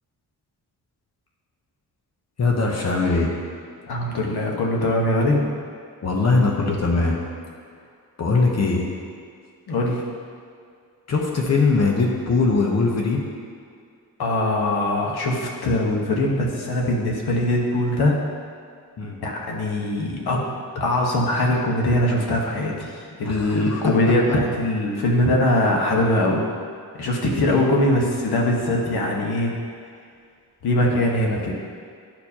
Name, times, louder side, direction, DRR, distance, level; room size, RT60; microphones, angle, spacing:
voice 1, 2.4-3.4 6.0-7.2 8.2-8.9 11.1-13.2 19.0-19.2 23.2-23.9, left 3 dB, 45° left, -1 dB, 0.8 m, -21 dB
voice 2, 3.9-5.4 9.7-10.0 14.2-18.1 19.2-20.4 20.7-26.4 27.0-29.5 30.6-31.5, left 1 dB, 85° left, -1 dB, 1.2 m, -21 dB
11.5 x 4.5 x 2.8 m, 2.2 s
wide cardioid pair, 175°, 37 cm